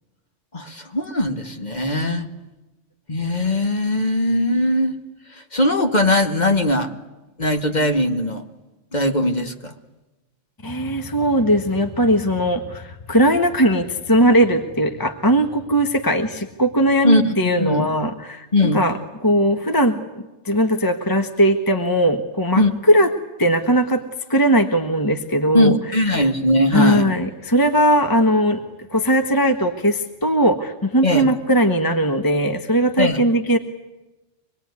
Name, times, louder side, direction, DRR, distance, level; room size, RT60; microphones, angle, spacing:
voice 1, 0.5-2.3 3.1-4.9 5.4-6.9 7.4-8.5 8.9-9.7 17.0-17.9 18.5-18.8 22.6-22.7 25.5-27.1 31.0-31.3 33.0-33.2, left 1 dB, 35° left, 5 dB, 2.1 m, -20 dB
voice 2, 10.6-18.5 18.7-20.0 20.4-23.1 23.4-24.0 24.3-25.8 26.1-26.2 26.7-28.6 28.9-33.6, equal, 20° left, 6 dB, 1.4 m, -19 dB
25.5 x 21.0 x 9.6 m, 1.1 s
omnidirectional pair, 1.3 m